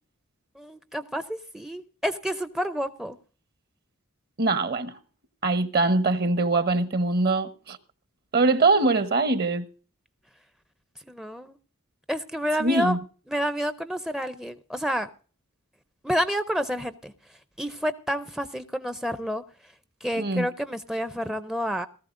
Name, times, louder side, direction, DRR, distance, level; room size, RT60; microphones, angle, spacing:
voice 1, 0.6-3.2 11.1-11.6 12.1-13.0 13.3-15.1 16.0-17.1 17.6-19.4 20.0-21.9, equal, ahead, 0.5 m, -29 dB
voice 2, 4.4-5.0 5.4-7.8 8.3-9.7 12.6-13.0 20.2-20.5, right 3 dB, 45° right, 1.1 m, -23 dB
18.5 x 14.5 x 2.6 m
head